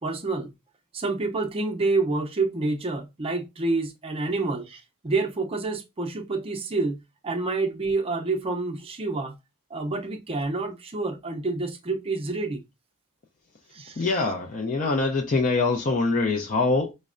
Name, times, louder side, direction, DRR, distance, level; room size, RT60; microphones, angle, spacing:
voice 1, 0.0-0.5 0.9-9.4 9.7-12.6 13.7-14.1, right 3 dB, 25° right, 0.5 m, -28 dB
voice 2, 14.0-16.9, left 3 dB, 35° left, 0.5 m, -24 dB
5.1 x 2.1 x 2.4 m
head